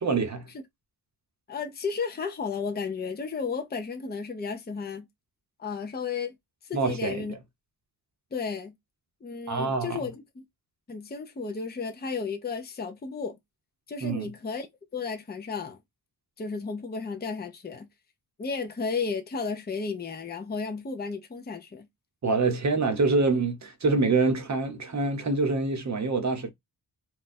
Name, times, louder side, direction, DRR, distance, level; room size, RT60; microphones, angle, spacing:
voice 1, 0.0-0.5 6.7-7.4 9.5-10.0 14.0-14.3 22.2-26.5, right 3 dB, 40° right, 0.8 m, -26 dB
voice 2, 1.5-5.1 5.6-6.4 6.6-7.4 8.3-8.7 9.2-10.4 10.9-13.4 13.9-14.7 14.9-15.8 16.4-17.9 18.4-21.9, left 5 dB, 25° left, 0.6 m, -33 dB
2.5 x 2.3 x 4.0 m
wide cardioid pair, 145°, 41 cm